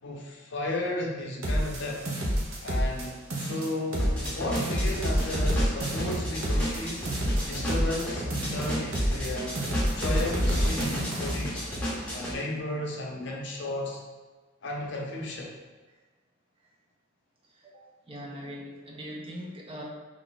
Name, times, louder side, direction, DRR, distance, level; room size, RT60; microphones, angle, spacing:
voice 1, 0.0-2.0 2.6-7.1 7.5-9.5 10.0-11.7 12.1-14.0 14.6-15.5, left 1 dB, 55° left, -1 dB, 0.6 m, -34 dB
sound 1, 1.4-3.1 3.3-4.3 4.6-8.1 8.3-9.3 9.6-11.4, equal, 75° right, 0.7 m, -28 dB
sound 2, 4.0-12.3, equal, 5° left, 0.7 m, -33 dB
voice 2, 17.5-19.8, equal, 25° right, -1 dB, 0.5 m, -41 dB
3.3 x 2.4 x 3.8 m, 1.3 s
head